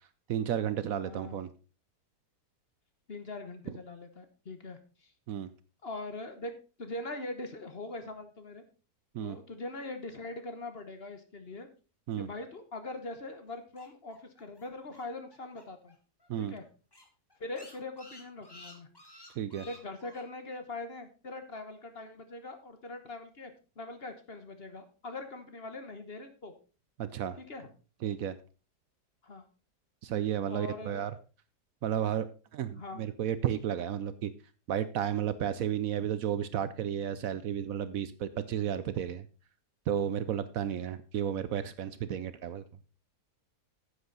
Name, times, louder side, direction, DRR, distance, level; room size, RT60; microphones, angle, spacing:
voice 1, 0.3-1.5 5.3-5.5 9.1-9.4 12.1-12.3 16.3-16.5 19.4-19.7 27.0-27.4 28.0-28.4 30.0-31.1 31.8-34.3 34.7-39.3 39.9-42.6, right 10 dB, 65° right, 14 dB, 1.0 m, -32 dB
voice 2, 1.0-1.4 3.1-5.1 5.8-6.5 6.8-8.6 9.2-11.7 12.1-15.9 16.4-16.6 17.4-18.9 19.6-23.5 23.8-26.5 27.4-27.7 29.2-29.5 30.5-31.1 32.7-33.0, left 2 dB, 40° left, 7 dB, 1.3 m, -42 dB
sound 1, 13.5-15.9 16.2-16.3 16.6-16.7 16.9-20.2, left 1 dB, 15° left, 1.6 m, -53 dB
10.0 x 8.1 x 4.0 m, 0.34 s
omnidirectional pair, 1.7 m